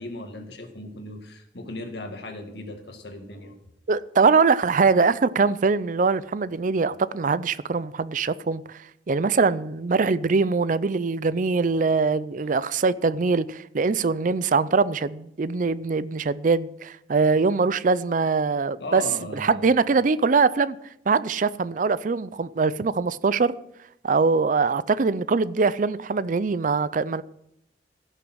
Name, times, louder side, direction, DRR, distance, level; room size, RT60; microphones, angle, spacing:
voice 1, 0.0-3.6 12.4-12.5 18.8-19.7, left 2 dB, 70° left, 1.9 m, -37 dB
voice 2, 3.9-8.8 9.1-19.0 19.4-20.8 21.1-23.5 24.0-27.2, right 4 dB, 50° right, 0.5 m, -22 dB
16.0 x 6.6 x 6.3 m
head